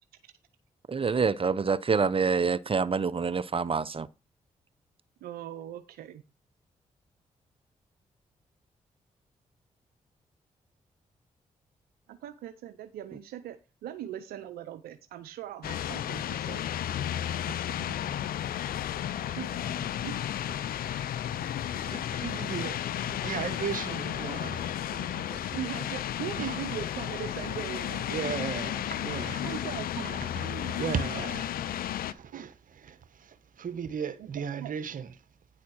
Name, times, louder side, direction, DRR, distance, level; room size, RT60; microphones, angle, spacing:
voice 1, 0.9-4.1, right 5 dB, 35° right, 0.8 m, -26 dB
voice 2, 5.2-6.2 12.1-16.7 19.4-19.7 20.0-20.2 25.5-28.0 29.4-30.2 32.3-32.5 34.2-34.7, right 10 dB, 85° right, 0.6 m, -40 dB
sound 1, 15.6-32.1, left 11 dB, 75° left, 0.5 m, -33 dB
voice 3, 17.2-18.5 19.2-19.5 20.6-25.4 26.4-26.6 28.1-29.5 30.2-32.5 32.8-35.1, right 7 dB, 65° right, 1.1 m, -37 dB
9.7 x 4.3 x 6.2 m
supercardioid pair, 45°, 15 cm